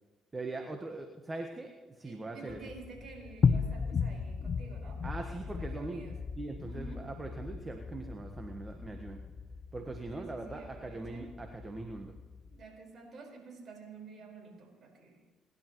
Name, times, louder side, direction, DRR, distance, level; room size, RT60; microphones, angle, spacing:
voice 1, 0.3-1.7 2.0-2.6 5.0-6.1 6.3-9.2 9.7-12.1, right 2 dB, 25° right, 4 dB, 1.4 m, -41 dB
voice 2, 2.0-6.1 6.7-7.0 10.1-11.3 12.5-15.2, right 4 dB, 55° right, 0 dB, 5.1 m, -50 dB
sound 1, 2.5-12.6, left 6 dB, 50° left, 0.8 m, -36 dB
30.0 x 11.5 x 3.2 m, 1.3 s
supercardioid pair, 65°, 0 cm